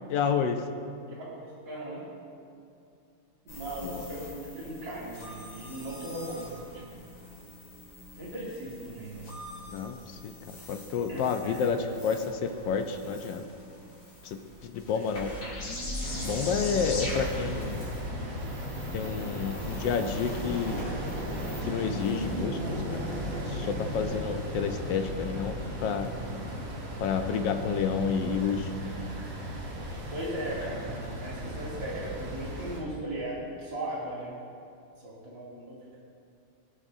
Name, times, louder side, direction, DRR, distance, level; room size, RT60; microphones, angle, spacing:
voice 1, 0.1-0.6 3.8-4.0 9.7-10.3 10.7-13.4 14.2-14.4 14.6-15.3 16.2-17.9 18.9-20.8 21.6-23.0 23.5-25.6 25.8-26.1 27.0-28.7, left 6 dB, 70° left, 7 dB, 1.1 m, -30 dB
voice 2, 1.2-2.1 3.4-6.9 8.2-9.3 11.1-11.6 14.9-15.3 19.2-19.4 30.1-34.4 35.0-36.0, right 1 dB, 55° right, -7 dB, 3.3 m, -38 dB
sound 1, 3.5-22.4, left 1 dB, 55° left, 3.2 m, -42 dB
sound 2, 16.0-32.8, equal, 75° right, 2.4 m, -36 dB
21.5 x 7.5 x 2.7 m, 2.5 s
omnidirectional pair, 2.4 m